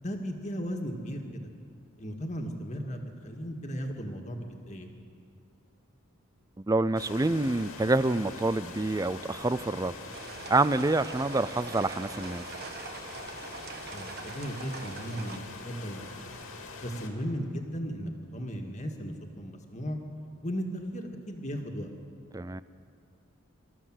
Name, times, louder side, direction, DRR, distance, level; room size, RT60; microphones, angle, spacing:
voice 1, 0.0-1.5 2.0-4.9 13.9-16.0 16.8-20.0 20.4-21.9, equal, 35° left, 3 dB, 2.0 m, -36 dB
voice 2, 6.6-9.9 10.5-12.4 22.3-22.6, right 2 dB, 15° right, 15 dB, 0.4 m, -27 dB
sound 1, 6.9-17.1, left 3 dB, 80° left, 2.4 m, -44 dB
sound 2, 10.1-15.4, right 4 dB, 50° right, 1.5 m, -43 dB
25.5 x 13.5 x 7.6 m, 2.4 s
head